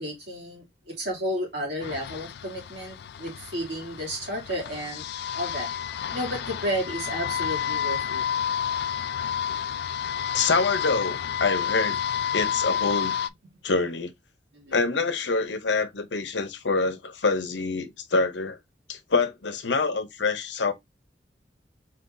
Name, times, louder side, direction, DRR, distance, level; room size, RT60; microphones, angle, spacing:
voice 1, 0.0-5.0 5.3-5.7 6.1-8.2 14.5-14.8, equal, 70° right, 2.5 m, -32 dB
sound 1, 1.8-13.3, left 8 dB, 65° left, 0.3 m, -30 dB
voice 2, 10.3-12.0 12.3-13.1 13.6-14.1 14.7-18.6 18.9-20.7, left 4 dB, 90° left, 0.8 m, -26 dB
4.0 x 3.9 x 2.6 m
head